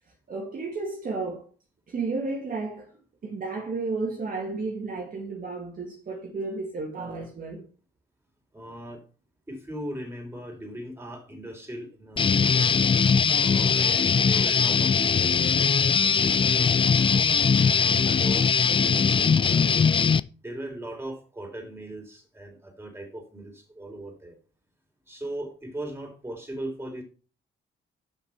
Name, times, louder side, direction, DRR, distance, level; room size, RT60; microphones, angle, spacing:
voice 1, 0.3-1.5 1.9-2.9 3.2-7.7, right 3 dB, 45° right, 1.9 m, -32 dB
voice 2, 8.5-9.0 9.5-12.8 13.3-16.9 17.6-19.9 20.4-24.4 25.1-27.0, right 1 dB, 10° right, 3.6 m, -39 dB
Guitar, 12.2-20.2, left 6 dB, 25° left, 0.4 m, -21 dB
6.8 x 5.9 x 5.8 m
cardioid pair, 90°, 20 cm